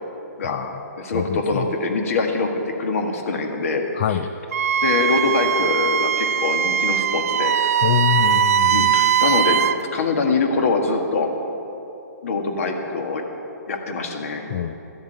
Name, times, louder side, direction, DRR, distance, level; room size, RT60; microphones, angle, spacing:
voice 1, 0.4-0.8 1.1-1.7 4.0-4.3 7.8-8.8 14.5-14.7, left 10 dB, 35° left, 9 dB, 0.4 m, -24 dB
voice 2, 1.0-4.2 4.8-7.5 8.7-9.6 9.9-11.3 12.2-13.2 13.7-14.4, left 3 dB, 55° left, 3 dB, 1.8 m, -23 dB
Wind instrument woodwind instrument, 4.5-9.8, right 8 dB, 60° right, 0.5 m, -20 dB
13.5 x 7.2 x 8.9 m, 3.0 s
hypercardioid pair, 160°, 9 cm